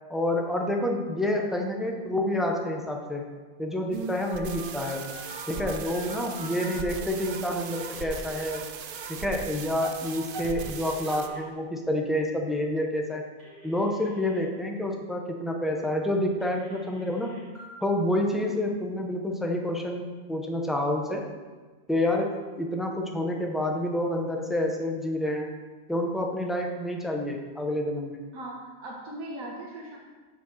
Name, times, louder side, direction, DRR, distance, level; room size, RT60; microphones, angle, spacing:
voice 1, 0.1-3.2 3.6-5.0 5.5-8.6 9.1-13.2 13.6-17.3 17.8-21.2 21.9-22.3 22.6-25.5 25.9-28.2, left 1 dB, ahead, 1 dB, 0.4 m, -28 dB
sound 1, 3.9-11.3, right 5 dB, 60° right, 0.6 m, -38 dB
Telephone, 4.2-6.8 7.8-8.4 10.4-11.4 13.4-14.4 16.4-17.7, right 1 dB, 30° right, 2.7 m, -48 dB
voice 2, 28.3-30.0, right 1 dB, 90° right, -1 dB, 1.5 m, -39 dB
6.7 x 4.9 x 6.2 m, 1.4 s
omnidirectional pair, 1.4 m